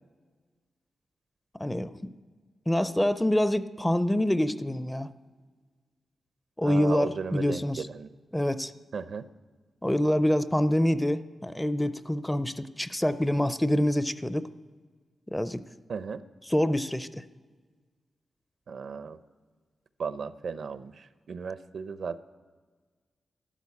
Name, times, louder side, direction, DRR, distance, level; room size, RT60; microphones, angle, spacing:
voice 1, 1.6-2.1 2.7-5.1 6.6-7.8 8.3-8.7 9.8-14.5 15.3-15.6 16.5-17.2, left 1 dB, 10° left, 13 dB, 0.5 m, -26 dB
voice 2, 6.6-8.1 8.9-9.3 15.9-16.2 18.7-19.2 20.0-22.2, right 5 dB, 65° right, 13 dB, 0.6 m, -35 dB
12.5 x 12.5 x 8.4 m, 1.5 s
wide cardioid pair, 120°, 0 cm